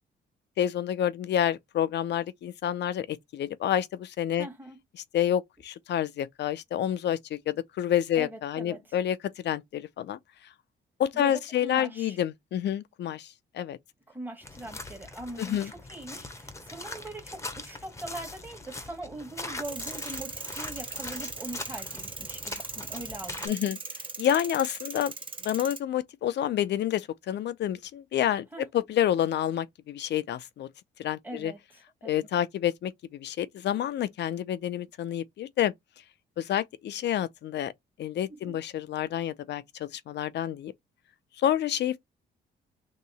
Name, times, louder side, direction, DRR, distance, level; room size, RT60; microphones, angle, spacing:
voice 1, 0.6-4.5 5.1-9.2 9.4-10.2 11.0-13.3 13.5-13.8 15.4-15.7 23.4-23.8 24.2-25.1 25.4-28.5 28.7-30.7 31.0-31.5 32.0-35.7 36.4-37.7 38.0-40.7 41.4-42.0, left 10 dB, 60° left, 0.5 m, -28 dB
voice 2, 4.4-4.8 8.2-9.0 11.1-12.2 14.1-23.8 28.5-28.8 31.2-31.8 38.3-38.6, right 2 dB, 10° right, 1.3 m, -42 dB
sound 1, 14.4-23.5, left 2 dB, 15° left, 0.8 m, -41 dB
sound 2, 19.6-25.8, right 3 dB, 25° right, 0.8 m, -39 dB
3.0 x 2.8 x 4.1 m
cardioid pair, 90°, 20 cm